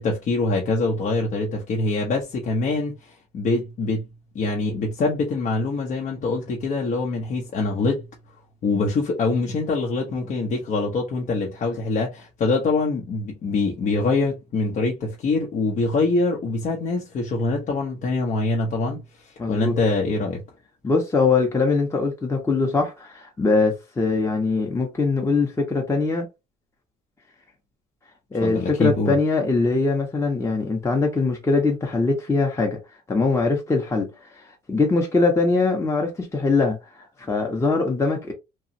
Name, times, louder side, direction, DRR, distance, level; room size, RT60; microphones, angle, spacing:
voice 1, 0.0-4.0 4.3-8.1 8.6-20.4 28.4-29.1, left 3 dB, 50° left, 0.8 m, -24 dB
voice 2, 19.4-19.7 20.8-26.3 28.3-32.8 33.1-34.1 34.4-34.5 34.7-38.3, left 3 dB, 15° left, 0.8 m, -22 dB
2.9 x 2.3 x 2.6 m
cardioid pair, 110°, 17 cm